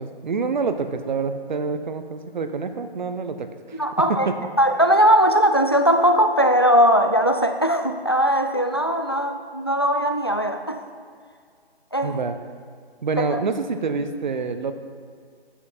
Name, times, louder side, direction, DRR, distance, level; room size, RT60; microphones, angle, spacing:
voice 1, 0.0-3.8 4.1-4.3 12.0-12.4 13.0-14.7, right 4 dB, 45° right, 9 dB, 0.8 m, -27 dB
voice 2, 3.7-4.3 4.6-10.8 11.9-12.2 13.2-13.4, equal, 25° left, 6 dB, 0.3 m, -19 dB
10.5 x 9.9 x 4.2 m, 2.1 s
figure-of-eight pair, 150°, 31 cm